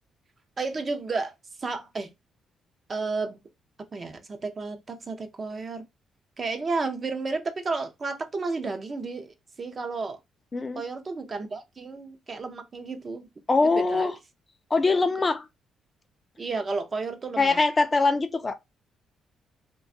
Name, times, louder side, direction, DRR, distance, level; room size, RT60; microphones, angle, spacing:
voice 1, 0.6-2.1 2.9-3.4 3.9-5.9 6.4-10.2 10.7-13.3 13.6-14.1 16.4-17.6, right 3 dB, 35° right, 0.5 m, -32 dB
voice 2, 13.5-14.1 14.7-15.5 17.4-18.6, left 3 dB, 30° left, 0.3 m, -22 dB
2.4 x 2.2 x 2.5 m
cardioid pair, 90°, 0 cm